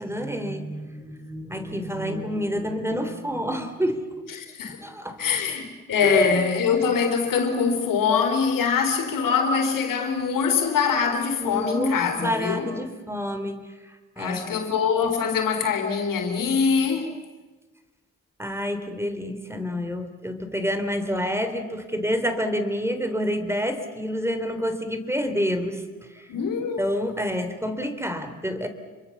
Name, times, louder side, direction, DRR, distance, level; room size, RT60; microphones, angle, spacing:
voice 1, 0.0-4.1 4.8-5.3 6.0-6.3 11.4-14.6 18.4-26.3 26.8-28.7, equal, 10° right, 3.5 m, -28 dB
voice 2, 4.4-4.8 5.2-12.7 14.2-17.1 26.3-26.8, left 6 dB, 75° left, 3.8 m, -23 dB
28.0 x 23.0 x 7.2 m
supercardioid pair, 55°, 33 cm